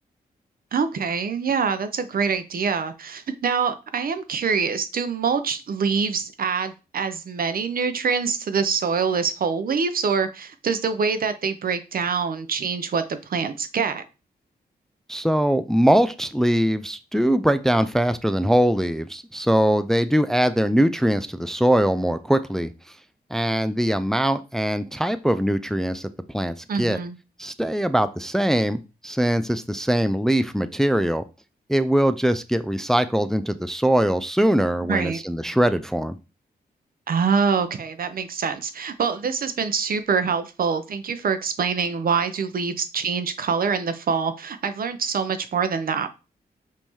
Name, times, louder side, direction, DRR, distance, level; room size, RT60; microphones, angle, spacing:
voice 1, 0.7-14.0 26.7-27.2 34.9-35.2 37.1-46.1, right 5 dB, 60° right, 0.6 m, -25 dB
voice 2, 15.1-22.7 23.3-26.1 26.3-27.0 27.4-31.2 31.7-36.2, equal, 5° left, 0.3 m, -22 dB
5.3 x 2.7 x 3.1 m
cardioid pair, 75°, 17 cm